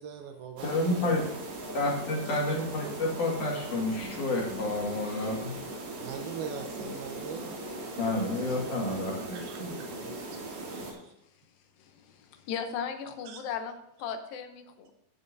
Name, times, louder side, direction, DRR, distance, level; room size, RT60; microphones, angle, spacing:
voice 1, 0.0-1.7 2.3-2.4 6.0-7.5 8.5-11.1 13.3-13.4, right 6 dB, 85° right, 5 dB, 2.6 m, -44 dB
voice 2, 0.6-1.2 1.7-5.6 8.0-9.8, left 2 dB, 60° left, -2 dB, 3.1 m, -30 dB
sound 1, 0.6-10.9, right 2 dB, 50° right, 3.2 m, -39 dB
voice 3, 11.8-13.7 14.0-14.9, left 7 dB, 75° left, 7 dB, 2.5 m, -37 dB
16.0 x 6.9 x 2.6 m, 0.78 s
omnidirectional pair, 4.4 m